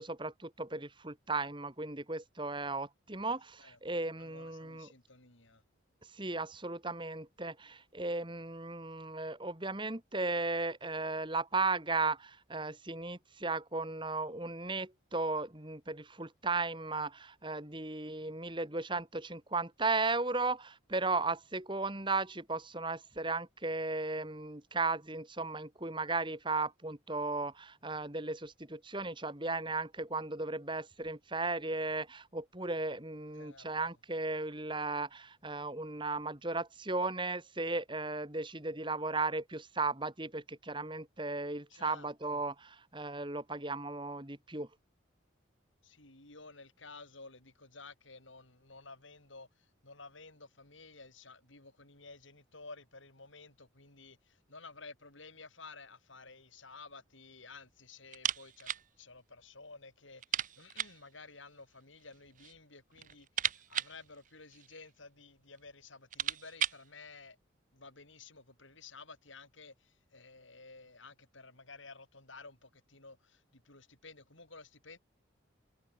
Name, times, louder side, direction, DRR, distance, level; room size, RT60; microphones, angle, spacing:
voice 1, 0.0-4.9 6.1-44.7, right 3 dB, 25° right, 2.5 m, -36 dB
voice 2, 3.6-5.6 33.3-34.0 41.7-42.4 45.8-67.4 67.7-75.0, left 3 dB, 70° left, 7.6 m, -53 dB
sound 1, 58.1-58.9 59.1-59.2 59.6-59.7 60.2-61.1 62.0-62.6 62.9-64.9 65.6-65.7 65.9-66.9, right 10 dB, 40° right, 0.7 m, -37 dB
head